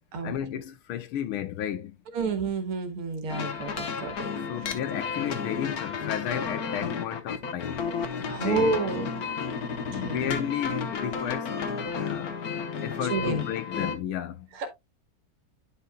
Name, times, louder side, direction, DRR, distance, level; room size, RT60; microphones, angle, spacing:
voice 1, 0.2-2.0 4.3-7.9 8.4-8.8 9.9-11.6 11.9-12.4 12.8-14.5, left 10 dB, 85° left, 1.7 m, -33 dB
voice 2, 2.1-4.3 8.3-9.3 9.9-10.5 13.1-13.4 14.6-14.7, right 4 dB, 85° right, 2.3 m, -30 dB
sound 1, 3.3-14.0, left 6 dB, 55° left, 1.3 m, -32 dB
10.0 x 5.7 x 2.3 m
omnidirectional pair, 2.3 m